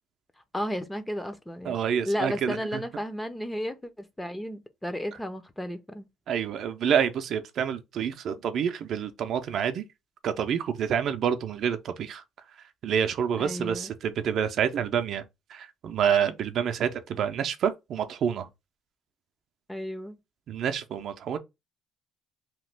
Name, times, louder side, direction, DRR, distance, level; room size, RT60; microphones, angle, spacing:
voice 1, 0.5-6.1 13.4-13.9 19.7-20.2, equal, 10° left, 0.5 m, -33 dB
voice 2, 1.7-2.8 6.3-9.8 10.2-12.2 12.8-15.2 15.5-18.5 20.5-21.4, right 8 dB, 60° right, 0.5 m, -28 dB
2.9 x 2.3 x 3.3 m
cardioid pair, 110°, 0 cm